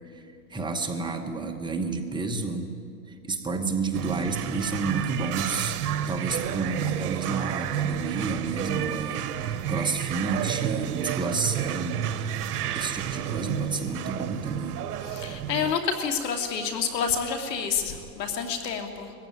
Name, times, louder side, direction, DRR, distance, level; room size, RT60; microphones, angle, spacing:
voice 1, 0.0-2.7 3.1-5.8 6.1-14.8, right 4 dB, 10° right, 3 dB, 1.0 m, -31 dB
sound 1, 3.9-15.7, right 10 dB, 65° right, 1.4 m, -30 dB
voice 2, 15.0-19.1, left 6 dB, 85° left, 6 dB, 2.9 m, -28 dB
20.5 x 15.0 x 9.6 m, 2.3 s
supercardioid pair, 145°, 48 cm